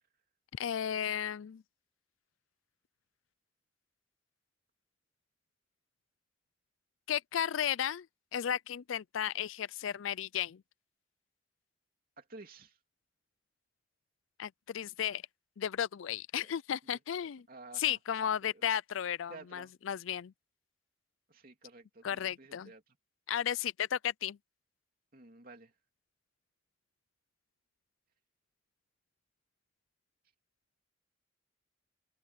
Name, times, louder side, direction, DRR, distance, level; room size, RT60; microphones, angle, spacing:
voice 1, 0.5-1.6 7.1-8.1 8.3-10.6 14.4-15.2 15.6-17.4 17.8-20.3 22.0-22.7 23.3-24.4, left 9 dB, 90° left, 0.4 m, -34 dB
voice 2, 12.2-12.8 16.4-16.5 16.9-17.0 17.5-18.0 18.4-18.7 19.3-19.7 21.3-23.0 25.1-25.7, right 3 dB, 45° right, 3.1 m, -52 dB
head